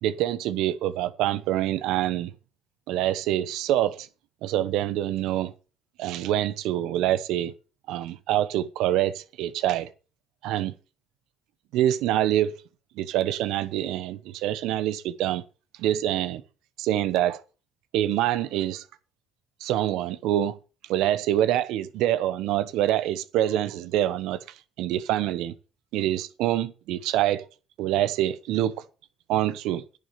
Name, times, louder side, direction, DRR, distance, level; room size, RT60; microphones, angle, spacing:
voice 1, 0.0-2.3 2.9-4.1 4.4-5.5 6.0-7.5 7.9-9.9 10.4-10.7 11.7-12.6 13.0-15.4 15.8-16.4 16.8-17.4 17.9-18.8 19.6-20.6 20.9-24.4 24.8-25.5 25.9-27.4 27.8-28.7 29.3-29.8, right 12 dB, 75° right, 0.9 m, -25 dB
10.5 x 6.7 x 6.8 m
supercardioid pair, 75°, 0 cm